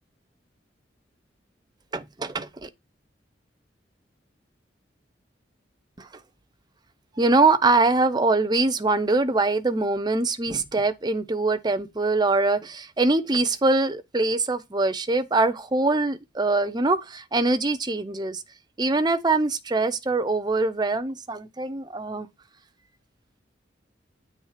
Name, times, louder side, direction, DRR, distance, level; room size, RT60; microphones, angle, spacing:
voice 1, 1.9-2.7 6.0-6.1 7.2-18.4 18.8-22.3, right 3 dB, 25° right, 0.6 m, -23 dB
8.7 x 3.3 x 5.7 m
head